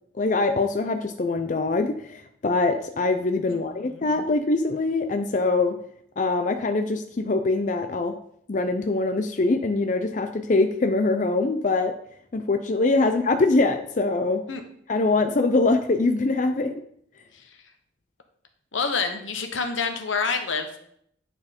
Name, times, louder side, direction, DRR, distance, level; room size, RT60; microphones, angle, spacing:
voice 1, 0.2-5.8 6.2-8.1 8.5-11.9 12.3-14.4 14.9-16.8, left 3 dB, 40° left, 7 dB, 0.5 m, -23 dB
voice 2, 3.5-4.1 14.5-14.6 17.3-17.4 18.7-20.8, left 5 dB, 80° left, 6 dB, 1.1 m, -28 dB
9.5 x 4.5 x 5.2 m, 0.69 s
head